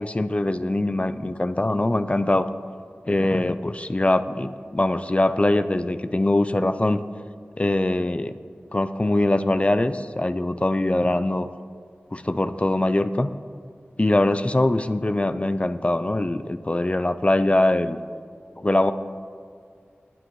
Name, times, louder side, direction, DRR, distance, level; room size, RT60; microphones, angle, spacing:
voice 1, 0.0-2.5 3.1-7.0 7.6-8.3 8.7-11.5 12.1-13.3 14.0-18.0 18.6-18.9, left 1 dB, 30° left, 11 dB, 0.4 m, -22 dB
19.5 x 8.9 x 3.1 m, 2.2 s
wide cardioid pair, 50°, 4 cm